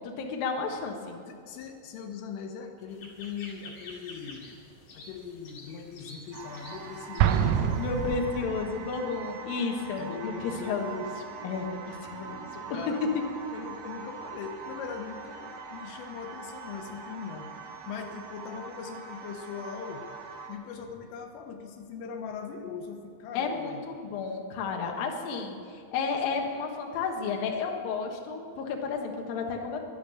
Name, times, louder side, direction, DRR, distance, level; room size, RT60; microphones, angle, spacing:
voice 1, 0.0-1.2 7.8-11.0 11.4-12.9 23.3-29.8, left 5 dB, 65° left, 1 dB, 2.5 m, -32 dB
voice 2, 1.3-4.6 4.9-7.8 10.0-10.9 12.7-13.1 13.5-17.5 17.9-20.1 20.5-23.8 24.7-25.0, left 6 dB, 85° left, 4 dB, 3.7 m, -40 dB
sound 1, 2.9-8.3, left 3 dB, 45° left, 2.2 m, -48 dB
sound 2, 6.3-20.5, right 5 dB, 70° right, 3.7 m, -43 dB
Explosion, 7.2-8.9, right 9 dB, 90° right, 3.4 m, -26 dB
12.0 x 12.0 x 10.0 m, 2.4 s
omnidirectional pair, 5.8 m